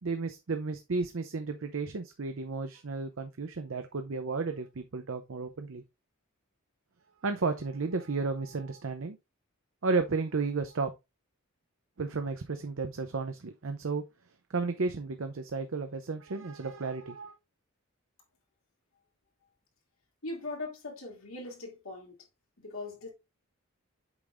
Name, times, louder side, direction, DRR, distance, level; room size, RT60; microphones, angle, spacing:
voice 1, 0.0-5.8 7.2-9.2 9.8-10.9 12.0-14.0 14.5-17.4, right 4 dB, 65° right, 0.6 m, -33 dB
voice 2, 20.2-22.2 22.6-23.1, left 2 dB, 70° left, 2.6 m, -40 dB
8.1 x 5.3 x 2.5 m
head